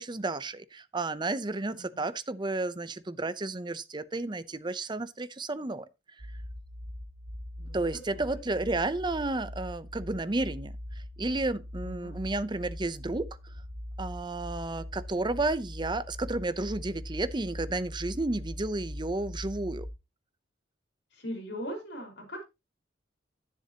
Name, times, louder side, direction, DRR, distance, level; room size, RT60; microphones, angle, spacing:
voice 1, 0.0-5.9 7.7-10.7 11.2-13.3 14.0-19.9, right 2 dB, 25° right, 0.7 m, -32 dB
voice 2, 1.7-2.1 7.6-8.6 11.8-12.2 21.1-22.4, equal, 65° left, 4.8 m, -41 dB
sound 1, 6.2-19.9, left 1 dB, 85° right, 1.6 m, -41 dB
10.5 x 10.0 x 2.9 m
head